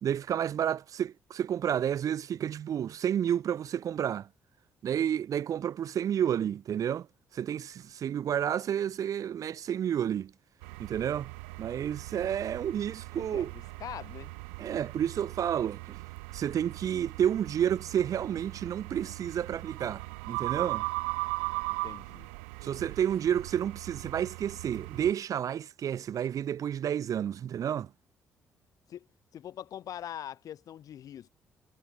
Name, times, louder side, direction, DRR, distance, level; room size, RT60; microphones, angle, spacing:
voice 1, 0.0-4.3 4.8-7.1 7.3-10.3 10.8-11.3 11.6-13.5 14.6-16.0 16.3-20.9 22.6-27.9, right 9 dB, 50° right, 1.1 m, -30 dB
sound 1, 10.6-25.1, right 31 dB, 70° right, 0.8 m, -39 dB
voice 2, 13.1-13.5 13.8-14.3 21.7-22.3 28.9-29.1 29.3-31.3, left 10 dB, 55° left, 1.3 m, -43 dB
figure-of-eight pair, 40°, 7 cm